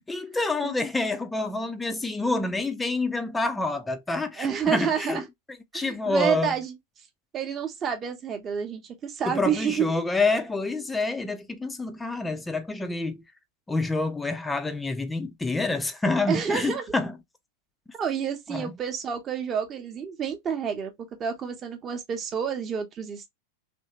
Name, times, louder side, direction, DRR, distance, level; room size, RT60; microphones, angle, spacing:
voice 1, 0.1-5.2 5.7-6.5 9.3-13.2 13.7-17.2 18.5-18.7, left 3 dB, 10° left, 0.6 m, -27 dB
voice 2, 4.4-5.2 5.7-6.8 7.3-10.1 16.3-16.8 18.0-20.9 21.2-23.3, right 7 dB, 25° right, 1.0 m, -29 dB
3.2 x 2.7 x 2.9 m
figure-of-eight pair, 90°, 0 cm